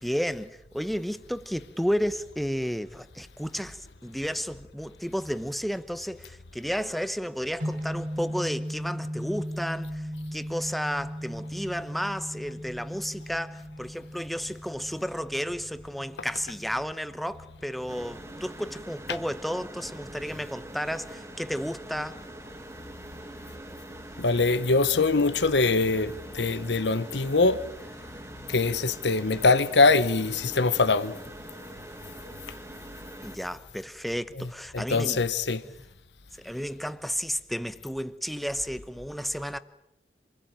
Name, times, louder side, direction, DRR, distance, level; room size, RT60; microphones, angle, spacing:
voice 1, 0.0-22.2 33.2-35.2 36.4-39.6, equal, ahead, 0.9 m, -32 dB
sound 1, 7.6-19.7, equal, 50° right, 2.9 m, -38 dB
sound 2, 17.9-33.4, right 1 dB, 15° right, 1.5 m, -44 dB
voice 2, 24.2-27.6 28.5-31.2 34.4-34.5 34.7-35.6, left 3 dB, 90° left, 1.0 m, -23 dB
27.0 x 21.0 x 8.9 m
head